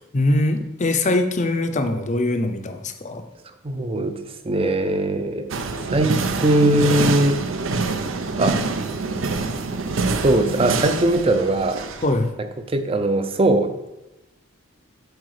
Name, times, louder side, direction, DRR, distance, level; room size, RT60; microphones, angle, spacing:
voice 1, 0.1-3.2 12.0-12.3, left 2 dB, 35° left, 7 dB, 0.7 m, -22 dB
voice 2, 3.6-4.2 4.4-5.5 5.9-7.4 8.4-8.6 10.2-11.8 12.7-13.7, right 1 dB, 30° right, 8 dB, 0.6 m, -20 dB
sound 1, 5.5-12.2, right 3 dB, 75° right, 0.6 m, -25 dB
8.0 x 4.7 x 4.9 m, 0.96 s
head